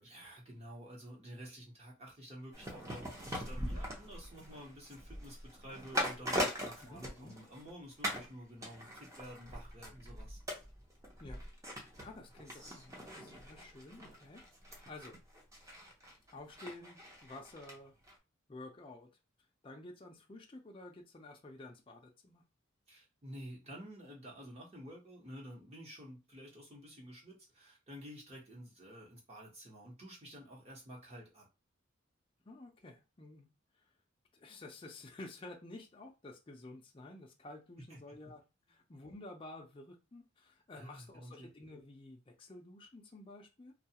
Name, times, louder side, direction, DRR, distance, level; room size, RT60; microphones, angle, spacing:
voice 1, 0.0-10.4 22.9-31.5 37.8-38.2 40.8-41.5, equal, 30° right, -2 dB, 1.0 m, -51 dB
sound 1, 2.5-7.7 8.0-8.3 8.6-17.8 18.1-18.2, equal, 15° right, 0.6 m, -41 dB
voice 2, 6.8-7.3 11.2-15.2 16.3-17.9 18.5-19.1 19.6-22.4 32.5-33.5 34.3-38.4 38.7-43.7, left 2 dB, 25° left, 1 dB, 0.4 m, -51 dB
2.3 x 2.3 x 2.8 m, 0.28 s
head